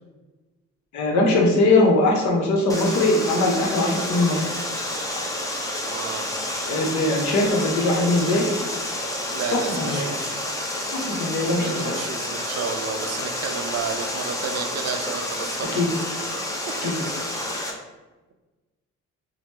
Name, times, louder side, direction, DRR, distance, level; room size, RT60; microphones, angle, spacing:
voice 1, 0.9-4.4 6.7-8.5 9.5-10.1 10.9-12.0 15.7-15.9 16.8-17.0, left 2 dB, 70° left, 0 dB, 0.7 m, -21 dB
Water, 2.7-17.7, left 1 dB, 10° left, 0.5 m, -29 dB
voice 2, 5.8-6.4 9.3-10.4 11.6-15.8 16.6-17.1, right 6 dB, 55° right, 6 dB, 0.4 m, -32 dB
2.8 x 2.0 x 3.3 m, 1.2 s
cardioid pair, 90°, 30 cm